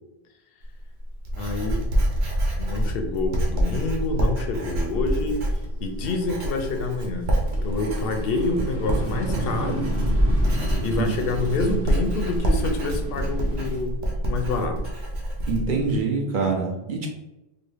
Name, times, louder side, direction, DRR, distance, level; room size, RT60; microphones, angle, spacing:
Writing, 0.6-16.0, right 1 dB, 90° right, 1.0 m, -27 dB
voice 1, 1.4-1.9 2.6-5.4 5.8-7.3 7.6-9.9 10.8-14.8, left 3 dB, 70° left, 4 dB, 0.7 m, -27 dB
sound 1, 4.2-6.8 7.2-13.8, right 1 dB, 15° right, 0.6 m, -29 dB
voice 2, 15.5-17.1, right 4 dB, 55° right, 1 dB, 0.8 m, -25 dB
4.0 x 2.0 x 3.3 m, 0.97 s
omnidirectional pair, 1.0 m